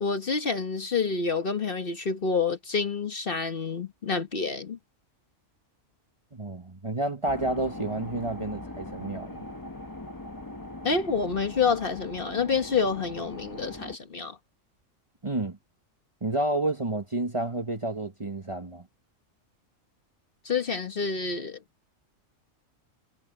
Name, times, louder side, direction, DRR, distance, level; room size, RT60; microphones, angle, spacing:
voice 1, 0.0-4.8 10.8-14.4 20.4-21.6, left 5 dB, 45° left, 1.4 m, -28 dB
voice 2, 6.3-9.5 15.2-15.6 16.2-18.8, right 2 dB, 25° right, 1.3 m, -30 dB
sound 1, 7.3-14.0, left 1 dB, 20° left, 0.9 m, -41 dB
omnidirectional pair, 1.3 m